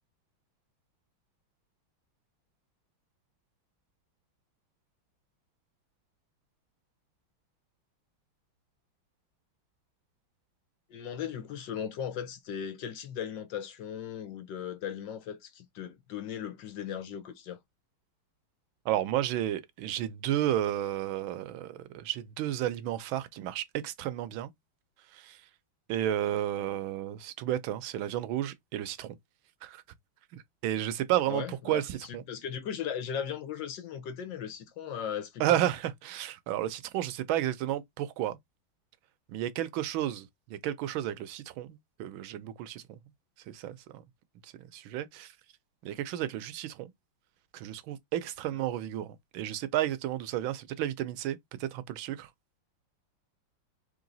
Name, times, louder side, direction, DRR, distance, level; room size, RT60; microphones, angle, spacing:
voice 1, 10.9-17.6 31.3-31.8 32.1-35.6, left 8 dB, 65° left, 1.5 m, -37 dB
voice 2, 18.8-24.5 25.1-25.5 25.9-29.2 29.6-29.8 30.3-32.2 35.4-38.4 39.3-43.0 43.5-44.0 44.4-45.4 45.8-46.9 47.5-52.3, right 12 dB, 80° right, 1.4 m, -32 dB
3.8 x 3.2 x 3.9 m
omnidirectional pair, 2.2 m